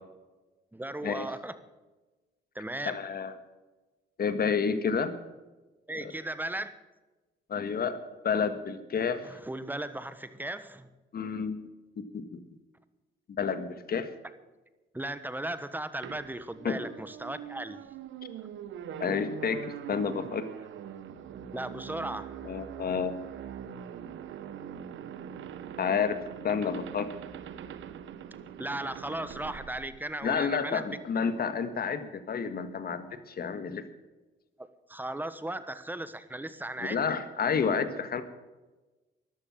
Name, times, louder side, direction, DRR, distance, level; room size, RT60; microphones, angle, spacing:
voice 1, 0.7-1.6 2.5-3.0 5.9-6.7 9.2-10.9 14.9-17.8 21.5-22.4 28.6-31.0 34.6-37.0, right 1 dB, 10° right, 13 dB, 1.2 m, -36 dB
voice 2, 2.8-3.3 4.2-5.1 6.0-6.1 7.5-8.0 8.2-9.3 11.1-11.6 12.0-12.4 13.4-14.1 16.6-16.8 19.0-20.5 22.4-23.1 25.8-27.1 30.2-33.8 36.8-38.2, left 6 dB, 50° left, 11 dB, 1.7 m, -30 dB
sound 1, 16.0-30.6, right 9 dB, 75° right, 1.1 m, -43 dB
13.5 x 11.5 x 7.3 m, 1.2 s
cardioid pair, 90°, 20 cm